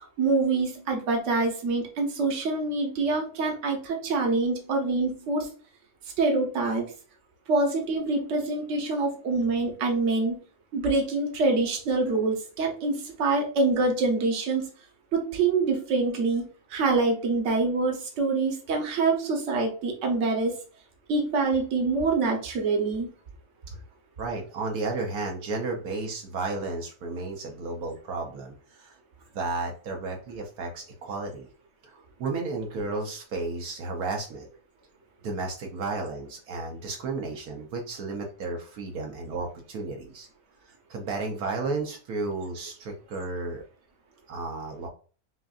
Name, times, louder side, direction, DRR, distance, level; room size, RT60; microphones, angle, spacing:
voice 1, 0.2-5.5 6.2-6.9 7.5-10.4 10.7-14.7 15.1-20.5 21.1-23.1, right 3 dB, 55° right, 2 dB, 1.2 m, -25 dB
voice 2, 24.2-29.0 29.3-31.5 31.8-34.5 35.2-40.3 40.6-43.6 44.3-44.9, right 3 dB, 75° right, 2 dB, 1.3 m, -33 dB
6.0 x 2.5 x 2.4 m, 0.38 s
omnidirectional pair, 1.6 m